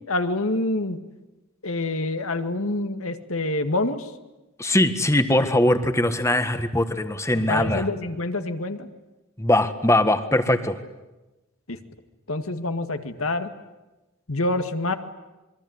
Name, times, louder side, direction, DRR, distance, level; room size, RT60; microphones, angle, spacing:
voice 1, 0.1-1.0 1.6-4.1 7.3-8.9 11.7-11.8 12.3-13.5 14.3-14.9, left 2 dB, 80° left, 8 dB, 2.1 m, -26 dB
voice 2, 4.6-7.9 9.4-10.8, left 1 dB, 15° left, 9 dB, 1.6 m, -21 dB
26.5 x 23.5 x 9.7 m, 1.0 s
head